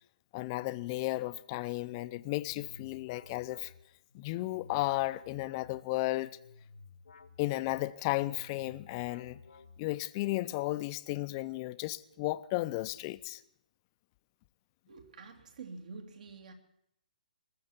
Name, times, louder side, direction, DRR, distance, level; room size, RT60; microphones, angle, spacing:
voice 1, 0.3-3.7 4.1-6.3 7.4-9.4 9.8-13.4, left 19 dB, 30° left, 0.6 m, -34 dB
sound 1, 2.1-10.2, left 4 dB, 80° left, 1.3 m, -56 dB
voice 2, 14.9-16.5, right 4 dB, 60° right, 2.5 m, -47 dB
20.5 x 7.0 x 9.6 m
hypercardioid pair, 145°, 5 cm